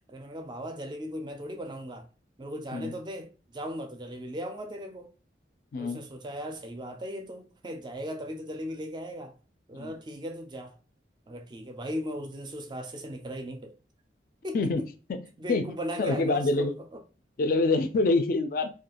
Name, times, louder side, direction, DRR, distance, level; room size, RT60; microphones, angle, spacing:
voice 1, 0.1-2.1 2.4-5.1 5.8-9.3 9.7-10.7 11.3-13.7 14.4-14.9 15.4-17.0, equal, 25° right, 0.4 m, -37 dB
voice 2, 14.5-15.2 15.5-15.6 16.0-16.7 17.4-18.7, left 3 dB, 50° left, 0.3 m, -26 dB
2.3 x 2.2 x 2.8 m
head